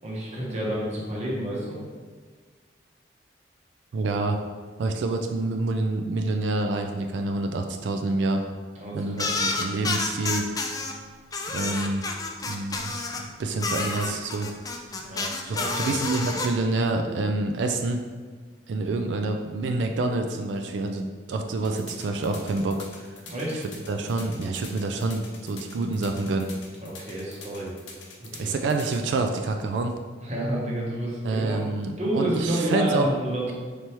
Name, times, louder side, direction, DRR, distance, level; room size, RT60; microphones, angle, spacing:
voice 1, 0.0-1.8 8.8-9.3 9.5-9.7 15.0-15.3 15.5-16.0 23.3-23.6 26.8-27.7 28.2-28.5 30.2-31.6 32.0-33.5, right 1 dB, 40° right, -4 dB, 1.0 m, -29 dB
voice 2, 3.9-4.4 4.8-8.4 8.9-10.5 11.5-12.0 12.5-14.5 15.5-18.0 18.7-23.1 23.9-26.5 28.4-30.0 31.2-33.1, right 2 dB, 70° right, 4 dB, 0.3 m, -27 dB
sound 1, 9.2-10.9 11.3-13.2 13.6-16.5, left 3 dB, 20° left, 0.3 m, -29 dB
sound 2, 21.6-29.0, left 4 dB, 80° left, 0.8 m, -45 dB
4.5 x 3.3 x 2.9 m, 1.5 s
head